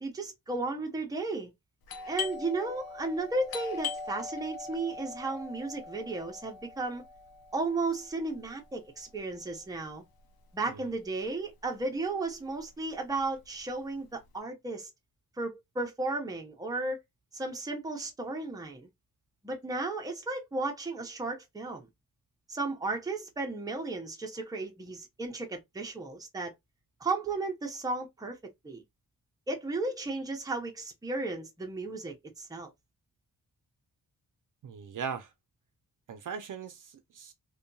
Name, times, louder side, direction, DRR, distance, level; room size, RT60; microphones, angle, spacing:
voice 1, 0.0-1.5 2.1-7.0 7.5-10.0 10.5-14.9 15.4-17.0 17.3-18.9 19.4-21.9 22.5-26.5 27.0-28.4 28.6-28.8 29.5-32.7, right 3 dB, 10° right, 0.5 m, -34 dB
Doorbell, 1.8-11.2 11.5-11.6 12.2-12.6 12.9-14.3, left 5 dB, 80° left, 0.6 m, -42 dB
voice 2, 34.6-35.3 36.1-37.3, right 6 dB, 60° right, 0.5 m, -39 dB
2.7 x 2.2 x 2.5 m
wide cardioid pair, 175°, 36 cm